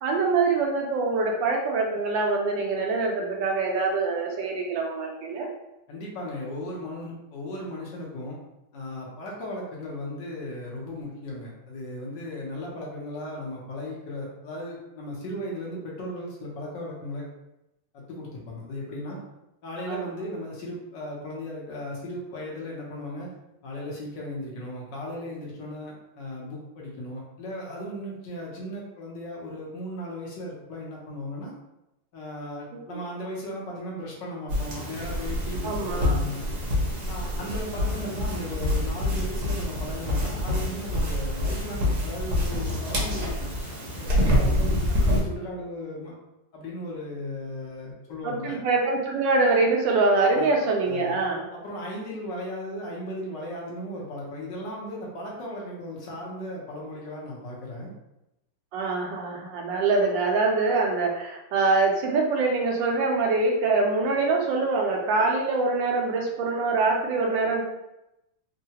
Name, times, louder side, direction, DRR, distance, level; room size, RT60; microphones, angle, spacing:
voice 1, 0.0-5.5 19.9-20.1 32.9-33.0 35.6-36.2 48.2-51.5 58.7-67.6, right 3 dB, 75° right, 0 dB, 1.2 m, -24 dB
voice 2, 5.9-8.4 8.7-17.2 17.9-19.2 19.6-23.3 23.6-31.5 32.1-36.4 37.1-43.3 44.0-46.1 46.5-48.6 50.3-50.5 50.8-51.2 51.5-57.9, left 1 dB, 70° left, -3 dB, 1.4 m, -36 dB
sound 1, 34.5-45.2, left 1 dB, 55° right, 1.0 m, -26 dB
3.7 x 2.1 x 2.8 m, 0.91 s
omnidirectional pair, 2.1 m